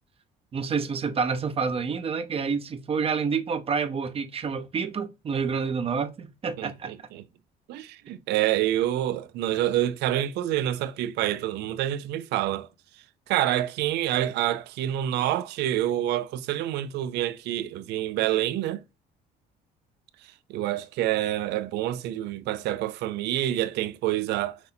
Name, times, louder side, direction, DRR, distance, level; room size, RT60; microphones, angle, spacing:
voice 1, 0.5-6.9, right 5 dB, 35° right, 0.7 m, -28 dB
voice 2, 6.6-7.2 7.7-12.7 13.3-18.8 20.5-24.6, right 13 dB, 80° right, 0.5 m, -27 dB
6.0 x 2.7 x 2.7 m
cardioid pair, 110°, 17 cm